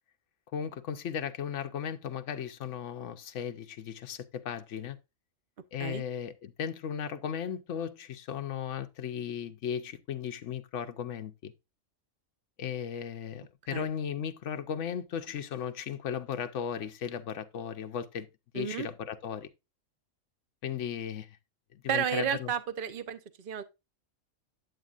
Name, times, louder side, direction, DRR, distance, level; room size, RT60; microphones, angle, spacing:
voice 1, 0.5-5.0 5.7-11.5 12.6-18.3 18.5-19.5 20.6-21.3 21.7-22.5, left 8 dB, 65° left, 1.1 m, -36 dB
voice 2, 18.5-18.9 21.9-23.6, right 9 dB, 45° right, 0.9 m, -32 dB
9.2 x 8.3 x 2.4 m
omnidirectional pair, 1.4 m